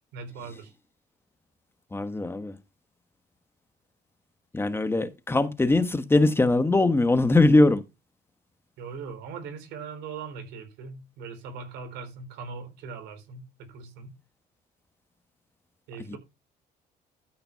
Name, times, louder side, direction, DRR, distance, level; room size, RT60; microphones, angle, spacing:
voice 1, 0.1-0.7 8.8-14.1 15.9-16.2, right 5 dB, 90° right, 3.7 m, -40 dB
voice 2, 1.9-2.5 4.5-7.8 16.1-16.2, left 2 dB, 15° left, 1.3 m, -21 dB
13.0 x 5.7 x 5.7 m
cardioid pair, 110°, 17 cm